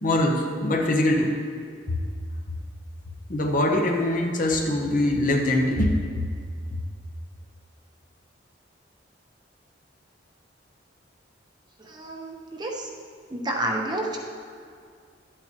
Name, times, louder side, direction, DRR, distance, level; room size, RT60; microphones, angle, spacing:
voice 1, 0.0-1.3 3.3-6.0, left 1 dB, 45° left, 1 dB, 1.0 m, -23 dB
voice 2, 11.8-12.9 13.3-14.2, right 1 dB, 25° right, -1 dB, 1.0 m, -30 dB
12.0 x 8.7 x 3.0 m, 2.2 s
head